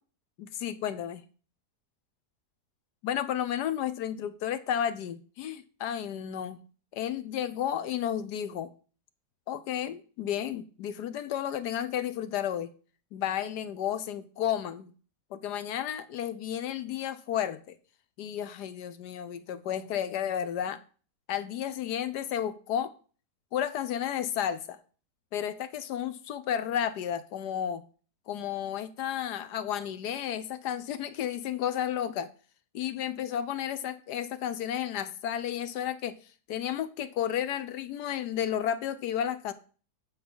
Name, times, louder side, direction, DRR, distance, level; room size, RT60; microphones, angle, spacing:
voice 1, 0.4-1.2 3.0-6.6 6.9-8.7 9.5-12.7 13.1-14.9 15.3-17.8 18.2-20.8 21.3-22.9 23.5-24.8 25.3-27.9 28.3-32.3 32.7-36.2 36.5-39.5, left 10 dB, 75° left, 1.3 m, -32 dB
8.6 x 5.7 x 5.4 m
omnidirectional pair, 1.8 m